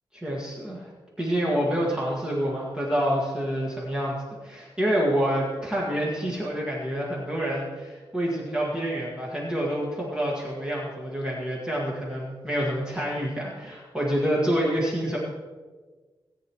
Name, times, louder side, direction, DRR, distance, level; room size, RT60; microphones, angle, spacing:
voice 1, 0.1-0.9 1.2-15.2, equal, 10° right, -5 dB, 1.8 m, -27 dB
18.0 x 9.0 x 3.1 m, 1.4 s
wide cardioid pair, 170°, 9 cm